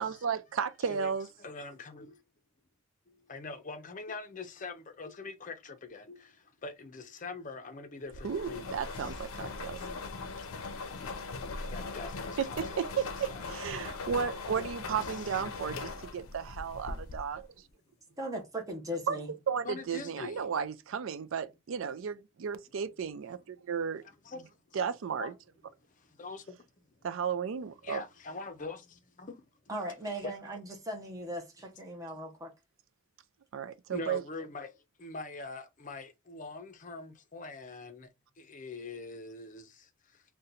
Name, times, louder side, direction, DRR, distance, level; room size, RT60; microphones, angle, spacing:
voice 1, 0.0-1.3 8.2-9.8 12.4-17.5 19.1-19.2 19.5-24.0 24.7-25.3 27.0-28.0 33.5-34.2, right 7 dB, 70° right, 0.4 m, -34 dB
voice 2, 1.4-2.2 3.1-9.2 11.7-12.9 13.3-13.5 15.0-15.4 19.1-19.2 19.6-20.5 24.0-24.8 25.2-25.3 25.9-26.9 27.8-29.4 30.2-30.3 33.9-38.1 38.4-40.2, left 3 dB, 35° left, 0.5 m, -44 dB
sound 1, 8.1-17.4, left 3 dB, 80° left, 0.5 m, -40 dB
voice 3, 18.2-19.3 29.7-32.5, equal, 15° right, 0.7 m, -38 dB
2.8 x 2.2 x 3.7 m
head